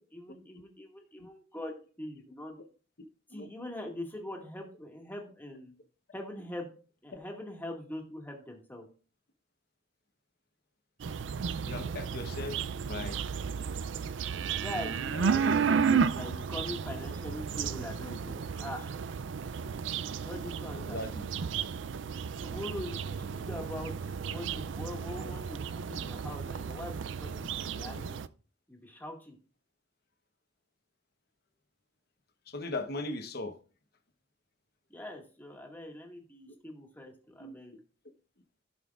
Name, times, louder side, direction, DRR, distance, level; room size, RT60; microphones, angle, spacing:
voice 1, 0.0-2.6 3.3-5.7 6.1-6.7 7.0-8.9 14.5-19.0 20.2-21.0 22.4-28.2 28.7-29.4 34.9-37.8, left 1 dB, 10° left, 1.9 m, -42 dB
sound 1, 11.0-28.3, right 6 dB, 70° right, 0.4 m, -33 dB
voice 2, 11.6-12.6 12.8-13.2 15.1-15.6 20.8-21.3 32.5-33.6 37.4-37.6, left 2 dB, 55° left, 1.1 m, -38 dB
16.0 x 5.6 x 2.5 m
head